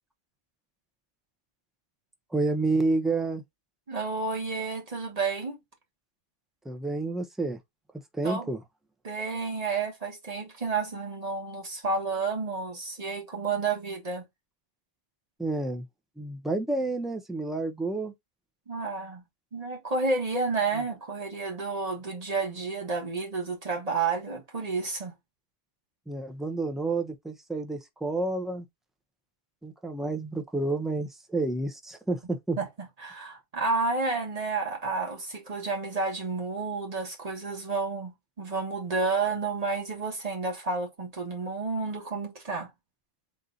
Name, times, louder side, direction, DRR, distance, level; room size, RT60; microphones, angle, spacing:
voice 1, 2.3-3.4 6.6-7.6 8.2-8.6 15.4-15.8 16.2-18.1 26.1-28.7 29.6-32.6, right 2 dB, ahead, 0.5 m, -29 dB
voice 2, 3.9-5.6 8.2-8.5 9.0-14.2 18.7-19.2 19.5-25.2 32.6-42.7, right 4 dB, 40° right, 1.4 m, -31 dB
3.9 x 2.7 x 3.9 m
omnidirectional pair, 1.0 m